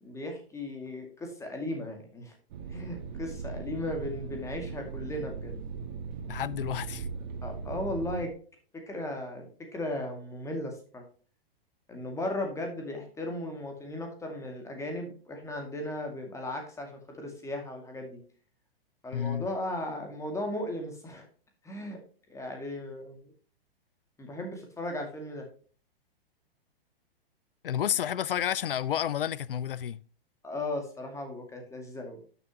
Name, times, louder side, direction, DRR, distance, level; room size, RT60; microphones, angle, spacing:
voice 1, 0.0-2.3 2.7-5.6 7.4-8.3 8.9-11.0 11.9-18.2 19.0-21.3 21.6-22.0 22.3-23.3 24.2-25.5 30.4-32.2, left 1 dB, 10° left, 2.1 m, -36 dB
sound 1, 2.5-8.3, right 5 dB, 45° right, 2.0 m, -39 dB
voice 2, 6.3-7.1 19.1-19.5 27.6-30.0, left 10 dB, 65° left, 0.5 m, -30 dB
11.5 x 6.9 x 2.9 m
figure-of-eight pair, 110°, 30 cm